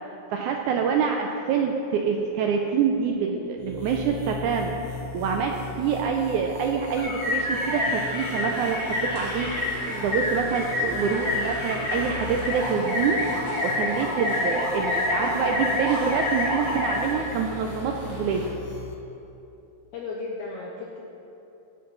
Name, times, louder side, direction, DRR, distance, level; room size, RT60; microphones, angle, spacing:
voice 1, 0.3-4.7 5.1-9.5 9.8-18.5, right 6 dB, 85° right, 2 dB, 1.7 m, -26 dB
sound 1, 3.6-18.9, left 6 dB, 85° left, 2.8 m, -40 dB
sound 2, 7.0-17.0, left 2 dB, 35° left, 1.1 m, -28 dB
sound 3, 7.2-18.5, equal, 45° right, 0.8 m, -39 dB
voice 2, 19.9-21.0, left 3 dB, 70° left, -3 dB, 2.0 m, -34 dB
16.5 x 7.8 x 4.0 m, 2.9 s
omnidirectional pair, 4.1 m